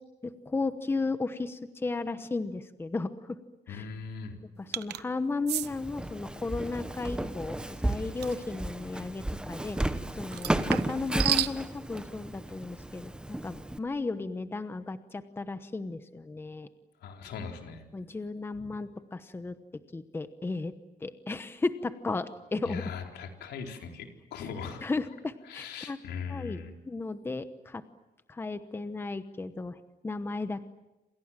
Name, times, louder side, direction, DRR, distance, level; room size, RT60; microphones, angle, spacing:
voice 1, 0.2-3.4 3.7-3.8 4.8-9.8 10.2-16.7 17.9-19.5 19.9-20.7 21.0-22.8 24.8-26.0 26.3-26.6 26.9-27.8 28.3-29.7 30.0-30.7, left 3 dB, 15° left, 11 dB, 1.0 m, -34 dB
voice 2, 3.7-4.4 17.0-17.8 18.5-18.7 22.6-24.8 25.4-26.7, left 6 dB, 90° left, 3 dB, 4.2 m, -40 dB
sound 1, 4.7-5.0 5.5-5.7 8.2-8.4 10.3-11.6, right 13 dB, 85° right, 0.9 m, -31 dB
Walk footsteps, 5.6-13.8, right 1 dB, 5° right, 1.1 m, -33 dB
27.5 x 27.5 x 7.5 m, 0.98 s
cardioid pair, 170°, 17 cm